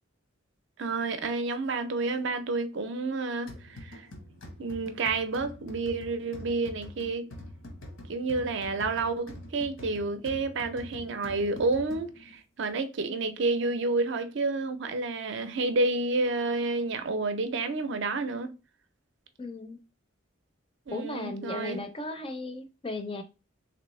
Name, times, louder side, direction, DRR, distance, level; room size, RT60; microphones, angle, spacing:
voice 1, 0.8-4.1 4.6-7.3 8.1-18.5 20.9-21.8, right 3 dB, 60° right, 0.5 m, -30 dB
sound 1, 3.5-12.4, left 1 dB, 80° left, 1.0 m, -45 dB
voice 2, 19.4-19.8 20.9-23.2, left 2 dB, 25° left, 0.4 m, -36 dB
3.4 x 3.0 x 3.0 m
head